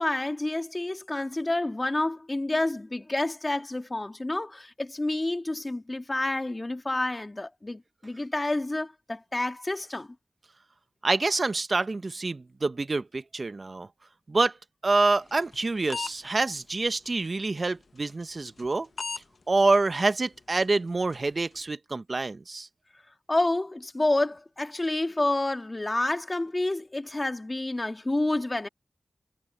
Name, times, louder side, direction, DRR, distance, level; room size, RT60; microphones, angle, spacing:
voice 1, 0.0-10.2 23.3-28.7, left 2 dB, 30° left, 1.8 m, -29 dB
voice 2, 11.0-13.9 14.3-14.5 14.8-18.9 19.5-22.7, right 3 dB, 50° right, 0.9 m, -26 dB
sound 1, 15.2-16.2 16.6-16.7 17.1-17.2 17.6-17.7 18.1-18.2 18.6-18.7 19.0-19.2 19.6-19.7 20.1-20.2 20.6-20.8 21.1-21.3, left 4 dB, 65° left, 0.9 m, -35 dB
cardioid pair, 55°, 0 cm